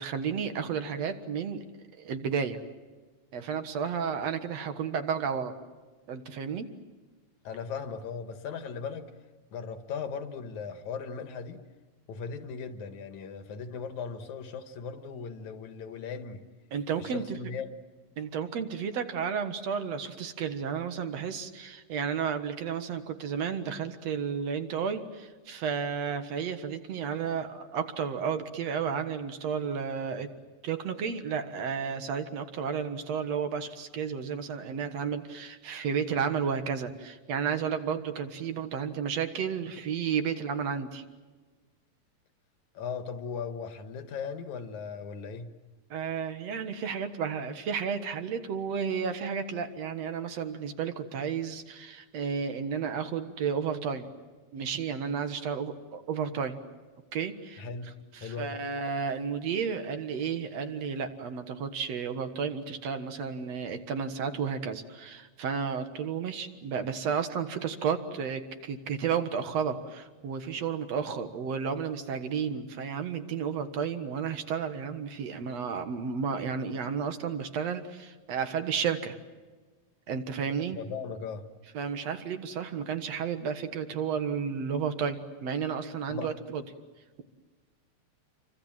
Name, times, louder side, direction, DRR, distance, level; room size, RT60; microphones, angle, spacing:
voice 1, 0.0-1.6 2.0-2.6 3.3-5.5 6.1-6.7 16.7-17.4 18.2-30.3 30.6-41.0 45.9-54.1 54.5-56.6 57.1-57.6 58.1-79.2 80.1-80.8 81.7-86.6, right 6 dB, 60° right, 8 dB, 2.6 m, -32 dB
voice 2, 7.4-9.1 9.5-11.6 12.1-16.4 17.0-17.7 42.7-45.5 57.6-57.9 58.2-58.5 80.7-81.4 86.1-86.3, left 6 dB, 75° left, 8 dB, 2.9 m, -38 dB
28.5 x 24.5 x 7.5 m, 1.4 s
omnidirectional pair, 3.4 m